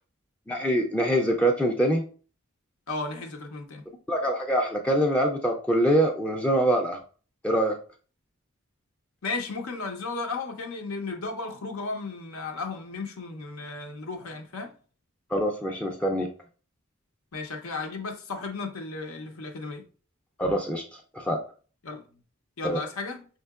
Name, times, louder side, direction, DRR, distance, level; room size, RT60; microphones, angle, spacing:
voice 1, 0.5-2.0 4.1-7.0 7.4-7.8 15.3-16.3 20.4-20.8 21.1-21.4 22.6-22.8, right 1 dB, 5° left, 0.4 m, -24 dB
voice 2, 2.9-3.9 9.2-14.7 17.3-19.8 21.8-22.0 22.6-23.3, left 3 dB, 90° left, 0.7 m, -34 dB
5.3 x 2.8 x 2.3 m
head